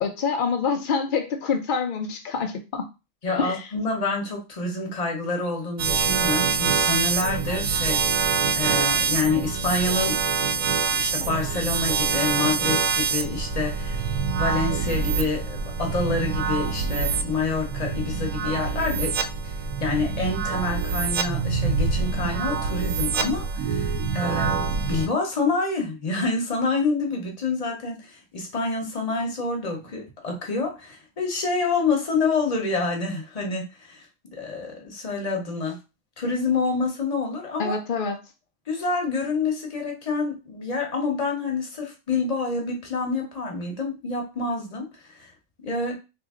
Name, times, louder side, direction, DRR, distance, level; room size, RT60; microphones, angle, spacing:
voice 1, 0.0-2.9 3.4-3.7 37.6-38.2, left 5 dB, 85° left, 5 dB, 0.4 m, -26 dB
voice 2, 3.2-10.2 10.5-10.6 10.9-19.2 19.4-19.5 19.8-34.1 34.3-35.8 36.2-37.8 38.7-45.3 45.6-45.9, left 3 dB, 35° left, 1 dB, 0.8 m, -27 dB
sound 1, 5.8-25.1, right 5 dB, 75° right, 0.9 m, -25 dB
2.9 x 2.5 x 3.6 m, 0.28 s
omnidirectional pair, 1.4 m